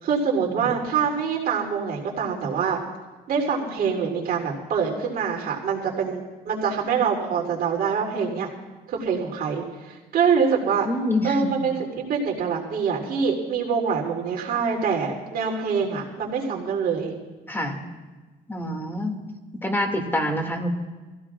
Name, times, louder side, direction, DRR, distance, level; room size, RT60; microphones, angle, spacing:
voice 1, 0.0-2.8 3.3-8.5 8.9-10.9 11.2-11.7 12.1-17.1, right 6 dB, 60° right, 0 dB, 3.3 m, -25 dB
voice 2, 10.8-11.4 17.5-17.8 18.5-19.2 19.6-20.7, left 1 dB, 10° left, 3 dB, 2.3 m, -26 dB
24.5 x 16.0 x 2.5 m, 1.2 s
cardioid pair, 110°, 17 cm